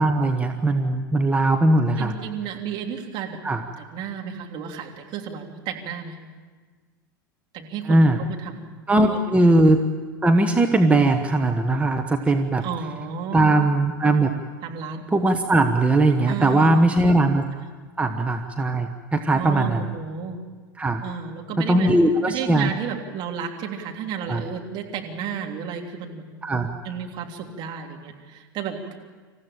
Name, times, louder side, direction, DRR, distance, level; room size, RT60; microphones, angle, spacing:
voice 1, 0.0-2.1 3.4-3.6 7.9-8.2 8.9-9.8 10.2-12.6 13.3-14.3 15.1-17.5 18.0-19.9 20.8-21.0 21.6-22.7 24.3-24.4 26.4-26.7, right 2 dB, 10° right, 4 dB, 1.3 m, -19 dB
voice 2, 2.0-3.4 3.8-6.2 7.5-9.5 12.6-13.5 14.6-15.0 16.3-16.7 17.5-17.6 19.3-20.4 21.0-21.9 22.3-26.2 26.8-28.9, right 7 dB, 45° right, 1 dB, 3.2 m, -32 dB
27.5 x 15.0 x 9.0 m, 1.5 s
figure-of-eight pair, 85°, 11 cm